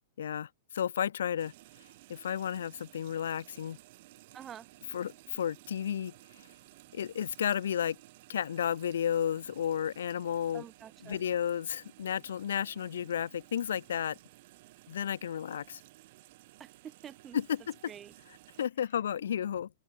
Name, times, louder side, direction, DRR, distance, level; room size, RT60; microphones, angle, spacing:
voice 1, 0.2-1.5 2.1-3.8 4.9-6.1 6.9-8.0 8.3-10.7 11.0-14.2 14.9-15.8 17.3-17.9 18.3-19.7, left 9 dB, 80° left, 0.9 m, -32 dB
sound 1, 1.4-18.7, right 19 dB, 35° right, 2.6 m, -56 dB
voice 2, 4.3-4.7 10.5-11.2 16.6-17.4 17.9-18.1, right 9 dB, 15° right, 3.0 m, -47 dB
open air
supercardioid pair, 180°, 0 cm